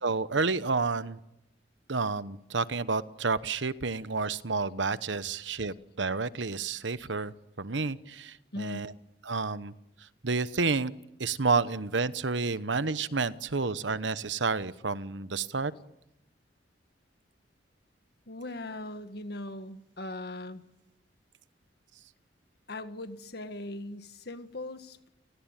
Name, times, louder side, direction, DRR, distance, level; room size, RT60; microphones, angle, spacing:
voice 1, 0.0-1.2 1.9-8.9 9.3-9.7 10.2-10.9 11.2-15.7, right 4 dB, 80° right, 14 dB, 1.1 m, -30 dB
voice 2, 8.5-8.9 18.3-20.6 22.7-25.1, left 1 dB, 60° left, 9 dB, 1.8 m, -39 dB
29.5 x 18.5 x 9.2 m, 0.86 s
head